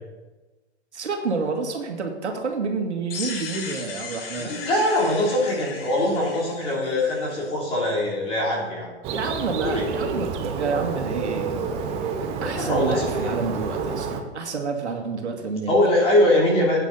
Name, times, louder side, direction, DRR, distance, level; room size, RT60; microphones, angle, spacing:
voice 1, 0.9-4.5 9.1-11.7 12.4-15.8, right 4 dB, 80° right, 3 dB, 2.3 m, -29 dB
sound 1, 3.1-7.9, left 5 dB, 55° left, 2.4 m, -37 dB
voice 2, 4.4-8.9 9.6-9.8 12.4-13.3 15.7-16.9, left 1 dB, 15° left, -3 dB, 3.1 m, -22 dB
Bird, 9.0-14.2, right 5 dB, 20° right, 0.8 m, -29 dB
14.5 x 9.0 x 4.1 m, 1.2 s
hypercardioid pair, 150°, 34 cm